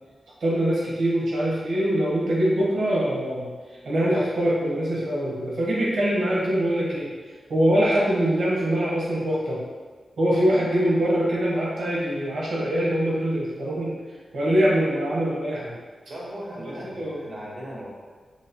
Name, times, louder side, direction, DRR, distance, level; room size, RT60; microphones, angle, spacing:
voice 1, 0.4-3.5 3.8-7.1 7.5-9.6 10.2-13.9 14.3-15.7 16.6-17.3, equal, 90° right, -6 dB, 1.1 m, -23 dB
voice 2, 16.1-17.9, equal, 55° right, -6 dB, 1.2 m, -37 dB
6.1 x 2.1 x 2.8 m, 1.4 s
wide cardioid pair, 110°, 0 cm